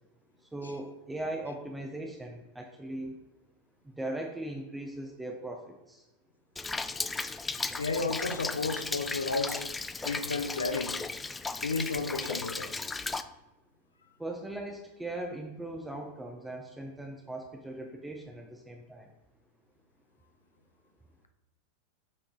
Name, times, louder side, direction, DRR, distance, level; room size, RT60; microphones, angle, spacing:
voice 1, 0.5-3.1 4.0-6.0 14.2-19.1, right 1 dB, 5° right, 0.7 m, -39 dB
Rain, 6.6-13.2, left 3 dB, 10° left, 0.3 m, -35 dB
voice 2, 7.8-9.7 10.0-11.0 11.6-12.7, left 3 dB, 75° left, 0.6 m, -32 dB
7.5 x 3.8 x 3.8 m
figure-of-eight pair, 85°, 0 cm